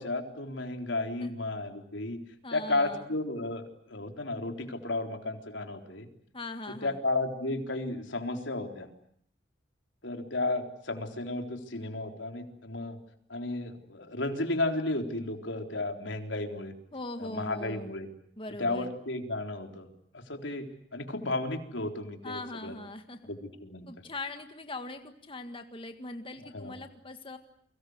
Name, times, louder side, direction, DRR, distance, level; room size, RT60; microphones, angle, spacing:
voice 1, 0.0-2.2 2.5-6.1 6.8-8.9 10.0-13.0 13.3-16.7 17.2-18.1 18.6-20.7 20.9-22.8 23.3-23.9 26.5-26.7, left 2 dB, 90° left, 5 dB, 3.9 m, -33 dB
voice 2, 2.4-3.0 6.3-7.0 16.9-17.9 18.4-18.9 22.2-23.3 23.9-27.4, left 2 dB, 30° left, 7 dB, 1.8 m, -40 dB
30.0 x 23.5 x 8.0 m, 0.63 s
head